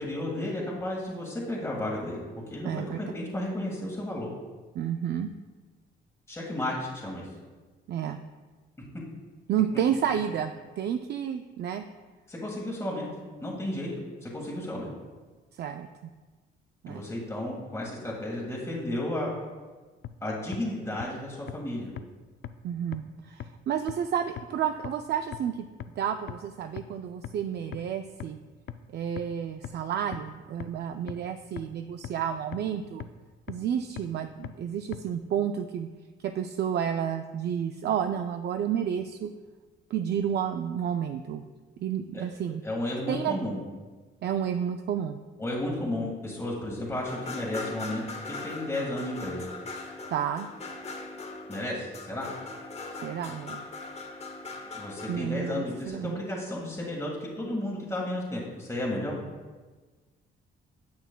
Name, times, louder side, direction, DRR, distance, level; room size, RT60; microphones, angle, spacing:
voice 1, 0.0-2.2 2.5-4.3 6.3-7.2 12.3-13.1 13.4-13.9 14.2-14.9 16.9-19.3 20.2-21.9 42.1-42.2 42.6-43.6 45.4-48.0 48.4-49.4 51.5-52.2 54.6-59.2, left 1 dB, 15° left, -4 dB, 1.6 m, -33 dB
voice 2, 2.6-3.0 4.7-5.3 7.9-8.2 9.5-11.8 15.5-16.1 16.8-17.0 22.6-25.7 26.0-28.4 28.9-33.1 33.5-35.9 36.3-39.3 39.9-41.4 41.8-42.6 43.1-43.4 44.2-45.2 50.1-50.5 53.0-53.6 55.1-56.2, right 9 dB, 55° right, 7 dB, 0.4 m, -30 dB
sound 1, 20.0-20.1 20.5-20.6 21.0-21.1 21.5-21.6 22.0-22.1 22.4-22.5 22.9-23.0 23.4-23.5 23.9-24.0 24.4-24.5 24.8-24.9 25.3-25.4 25.8-25.9 26.3-26.4 26.8-26.9 27.2-27.3 27.7-27.8 28.2-28.3 28.7-28.8 29.2-29.3 29.6-29.7 30.1-30.2 30.6-30.7 31.1-31.2 31.6-31.7 32.0-32.1 32.5-32.6 33.0-33.1 33.5-33.6 34.0-34.1 34.4-34.5 34.9-35.0, left 11 dB, 60° left, 0.4 m, -37 dB
sound 2, 47.1-55.9, left 3 dB, 35° left, 0.9 m, -40 dB
10.0 x 6.2 x 2.2 m, 1.3 s
cardioid pair, 90°, 20 cm